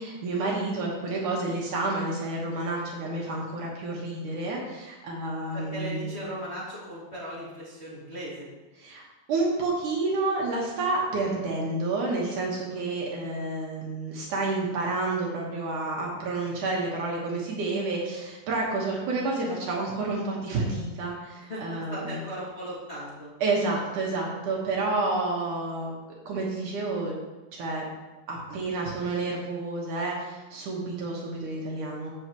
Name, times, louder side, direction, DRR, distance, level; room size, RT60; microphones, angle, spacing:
voice 1, 0.0-6.2 8.8-9.0 9.3-22.2 23.4-25.9 26.3-27.1 27.5-27.9 28.3-32.1, right 3 dB, 65° right, -3 dB, 2.8 m, -29 dB
voice 2, 5.5-8.5 12.7-12.9 21.5-21.6 21.9-23.3, equal, 20° left, -8 dB, 2.0 m, -37 dB
14.0 x 6.5 x 3.1 m, 1.1 s
omnidirectional pair, 4.2 m